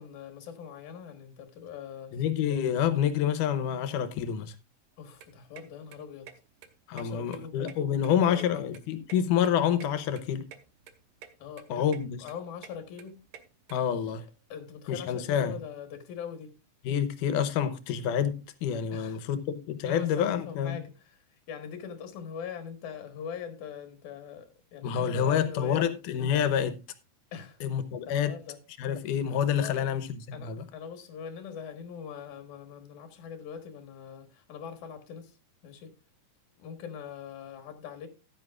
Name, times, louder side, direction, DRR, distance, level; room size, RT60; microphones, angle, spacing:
voice 1, 0.0-2.1 5.0-6.3 7.0-7.6 8.1-8.7 11.4-11.8 12.2-13.2 14.5-16.5 18.9-19.2 19.8-25.9 27.3-27.6 28.1-28.6 29.6-29.9 30.3-35.4 35.6-36.0 36.6-38.1, left 7 dB, 70° left, 2.8 m, -42 dB
voice 2, 2.1-4.5 6.9-10.4 11.7-12.2 13.7-14.2 14.9-15.6 16.8-18.3 18.6-20.8 24.8-26.8 27.6-28.3 28.8-30.7, left 8 dB, 85° left, 2.4 m, -28 dB
sound 1, 5.0-13.7, right 8 dB, 80° right, 2.5 m, -51 dB
14.5 x 10.5 x 2.4 m
omnidirectional pair, 3.6 m